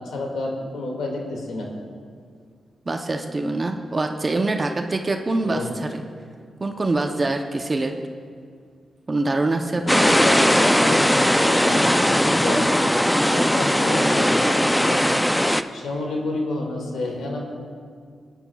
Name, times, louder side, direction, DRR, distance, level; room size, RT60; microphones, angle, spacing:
voice 1, 0.0-1.7 5.4-5.7 9.7-12.7 13.2-15.0 15.7-17.4, left 2 dB, 85° left, 0 dB, 2.0 m, -29 dB
voice 2, 2.9-6.0 6.6-7.9 9.1-10.0, right 2 dB, 35° right, 4 dB, 0.7 m, -24 dB
sound 1, 9.9-15.6, equal, 5° left, 0.4 m, -19 dB
20.5 x 10.0 x 2.3 m, 2.1 s
cardioid pair, 65°, 0 cm